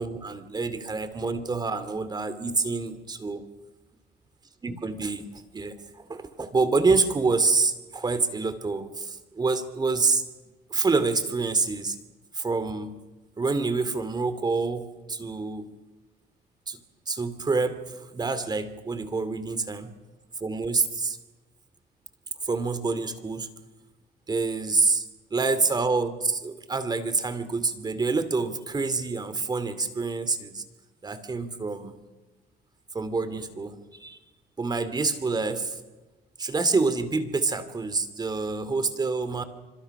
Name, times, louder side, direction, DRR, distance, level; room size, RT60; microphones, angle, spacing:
voice 1, 0.0-3.4 4.6-5.2 5.5-10.2 10.7-12.0 12.3-13.0 13.4-15.7 16.7-16.8 17.1-19.9 20.4-21.2 22.4-23.5 24.3-30.6 31.0-31.9 32.9-34.2 34.6-35.8 36.4-39.4, right 4 dB, 25° right, 11 dB, 2.6 m, -27 dB
26.0 x 26.0 x 6.0 m, 1.2 s
cardioid pair, 110°, 17 cm